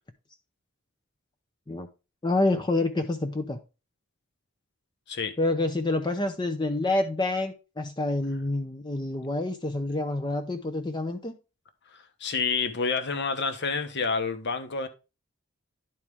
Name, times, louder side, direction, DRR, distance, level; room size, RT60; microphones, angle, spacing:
voice 1, 2.2-3.6 5.4-11.3, left 2 dB, 20° left, 0.6 m, -27 dB
voice 2, 11.9-14.9, left 5 dB, 55° left, 1.1 m, -29 dB
11.0 x 4.4 x 3.5 m
head